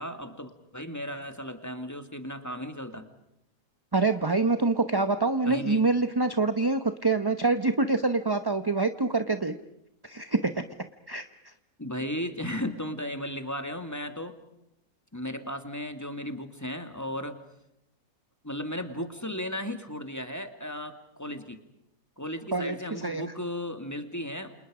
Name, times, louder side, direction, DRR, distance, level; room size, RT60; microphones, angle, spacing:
voice 1, 0.0-3.1 5.5-5.8 11.8-14.4 15.1-17.4 18.4-21.6 22.2-24.5, left 1 dB, 10° left, 8 dB, 2.2 m, -35 dB
voice 2, 3.9-9.5 10.0-10.6 11.1-11.2 22.5-22.7 23.0-23.2, right 3 dB, 20° right, 10 dB, 0.8 m, -25 dB
29.5 x 28.0 x 5.1 m, 0.81 s
omnidirectional pair, 1.8 m